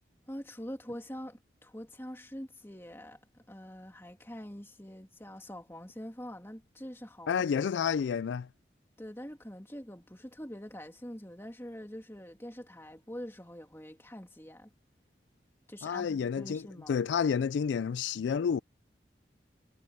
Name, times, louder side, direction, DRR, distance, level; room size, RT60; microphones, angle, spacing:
voice 1, 0.3-7.4 9.0-14.7 15.7-17.0, equal, 15° left, 2.9 m, -44 dB
voice 2, 7.3-8.5 15.8-16.6 16.9-18.6, left 7 dB, 85° left, 0.3 m, -29 dB
head